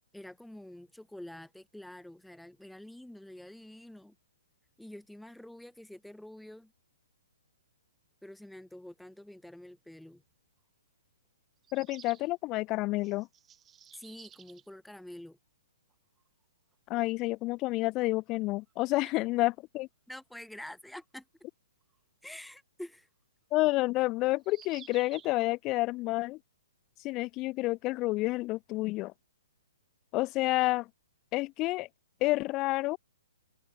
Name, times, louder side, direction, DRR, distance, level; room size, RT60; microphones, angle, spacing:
voice 1, 0.1-4.1 4.8-6.7 8.2-10.2 13.9-15.4 20.1-21.2 22.2-23.1, left 1 dB, ahead, 5.1 m, -47 dB
sound 1, 10.2-10.3 11.6-12.3 13.0-14.7 15.9-16.0 16.2-16.3 18.7-18.8 21.9-22.0 24.4-25.4, right 9 dB, 15° right, 5.3 m, -53 dB
voice 2, 11.7-13.3 16.9-19.9 23.5-26.4 27.0-29.1 30.1-30.9 31.3-31.9 32.2-33.0, left 20 dB, 25° left, 1.3 m, -29 dB
hypercardioid pair, 160°, 0 cm